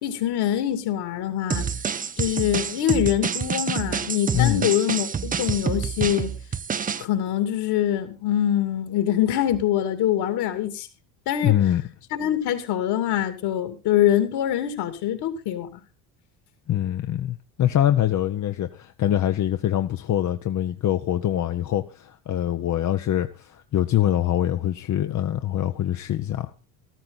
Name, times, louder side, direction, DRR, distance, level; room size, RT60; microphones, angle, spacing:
voice 1, 0.0-1.7 2.2-6.3 7.0-10.9 11.3-11.6 12.1-15.8, left 11 dB, 60° left, 2.7 m, -24 dB
sound 1, 1.5-7.0, right 7 dB, 20° right, 0.6 m, -28 dB
voice 2, 4.3-4.7 11.4-11.8 16.7-26.5, left 12 dB, 40° left, 0.9 m, -24 dB
14.0 x 13.0 x 4.0 m
supercardioid pair, 90°, 44 cm